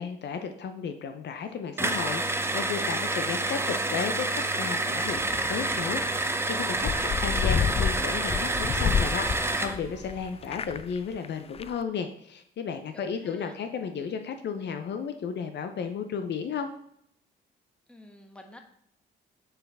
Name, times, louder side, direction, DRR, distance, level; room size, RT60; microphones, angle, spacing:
voice 1, 0.0-6.9 7.2-16.7, left 6 dB, 60° left, 7 dB, 0.7 m, -34 dB
sound 1, 1.8-9.8, right 2 dB, 10° right, 0.6 m, -28 dB
sound 2, 5.0-10.8, right 3 dB, 45° right, 1.7 m, -47 dB
voice 2, 6.7-7.2 12.9-13.6 17.9-18.6, left 1 dB, 5° left, 4 dB, 1.2 m, -49 dB
sound 3, 6.8-10.1 10.4-11.0 11.2-11.3 11.5-11.7, left 7 dB, 30° left, 0.4 m, -28 dB
8.8 x 4.7 x 3.5 m, 0.72 s
cardioid pair, 90°, 20 cm